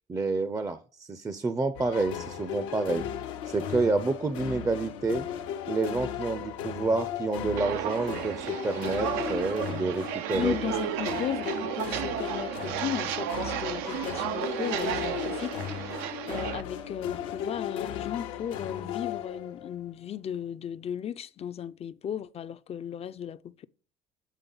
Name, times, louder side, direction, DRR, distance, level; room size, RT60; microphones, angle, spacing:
voice 1, 0.1-3.1 3.5-5.3 5.7-10.6, right 3 dB, 20° right, 0.5 m, -29 dB
sound 1, 1.7-19.9, left 9 dB, 90° left, 0.8 m, -36 dB
Walk footsteps, 7.6-16.6, right 11 dB, 80° right, 0.5 m, -33 dB
voice 2, 10.3-23.7, left 9 dB, 40° left, 0.4 m, -36 dB
8.3 x 3.4 x 3.9 m
supercardioid pair, 75°, 16 cm